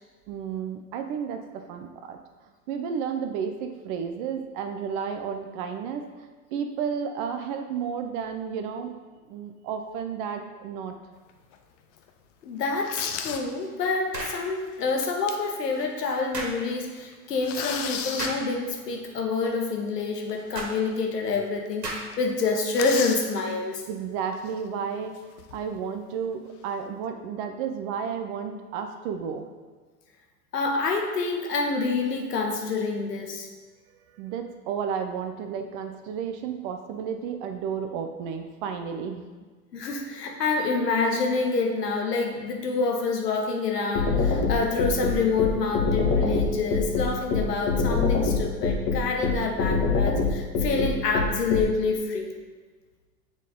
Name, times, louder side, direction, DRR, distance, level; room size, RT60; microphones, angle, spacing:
voice 1, 0.3-2.2 2.7-8.9 9.3-10.9 23.9-25.2 25.5-29.5 34.2-39.3, right 7 dB, 35° right, 6 dB, 0.5 m, -32 dB
sound 1, 11.3-11.6 12.1-12.2 12.7-13.5 13.9-14.0 14.8-15.6 16.0-16.1 16.4-16.6 17.0-18.3 20.3-20.4 20.9-21.0 21.3-21.4 21.7-21.8 22.1-23.3 24.3-24.6 25.1-25.8, left 7 dB, 50° left, 0.6 m, -34 dB
voice 2, 12.4-23.8 30.5-33.5 39.7-52.3, left 4 dB, 80° left, 2 dB, 1.2 m, -27 dB
sound 2, 14.1-14.4 16.3-16.6 18.2-18.5 20.5-20.7 21.8-22.2, right 2 dB, 90° right, 1.4 m, -33 dB
sound 3, 43.9-51.6, left 4 dB, 35° left, 1.3 m, -24 dB
7.2 x 3.7 x 3.8 m, 1.4 s
hypercardioid pair, 100°, 47 cm